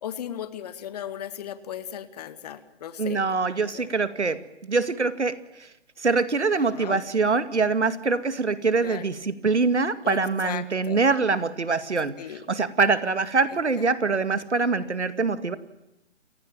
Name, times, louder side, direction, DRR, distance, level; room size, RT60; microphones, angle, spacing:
voice 1, 0.0-3.2 3.6-3.9 6.5-7.0 8.8-9.1 10.0-11.0 12.2-12.5 13.8-14.2, left 10 dB, 35° left, 13 dB, 1.9 m, -37 dB
voice 2, 3.0-5.4 6.0-12.2 12.5-15.6, right 4 dB, 75° right, 13 dB, 2.3 m, -24 dB
30.0 x 16.5 x 8.9 m, 0.92 s
figure-of-eight pair, 140°, 35 cm